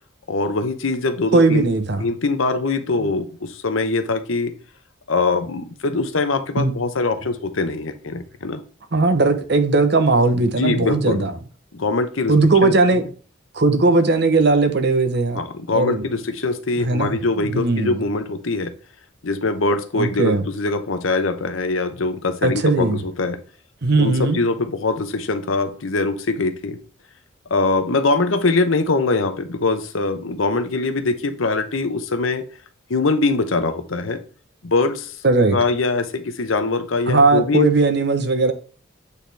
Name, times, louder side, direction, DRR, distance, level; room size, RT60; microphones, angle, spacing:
voice 1, 0.3-1.7 2.0-4.5 5.1-8.6 10.5-11.3 11.7-12.3 12.6-13.0 15.3-18.7 19.2-23.4 24.0-26.8 27.5-32.5 32.9-34.2 34.6-35.2 35.5-37.7, left 3 dB, 70° left, 0.8 m, -22 dB
voice 2, 1.3-2.1 3.0-3.1 6.6-6.7 8.9-11.3 12.3-13.0 13.5-15.4 15.7-16.0 16.8-18.0 20.0-20.4 22.4-23.0 23.8-24.4 35.2-35.6 37.1-38.5, right 3 dB, 50° right, 0.8 m, -18 dB
8.2 x 4.1 x 3.4 m
head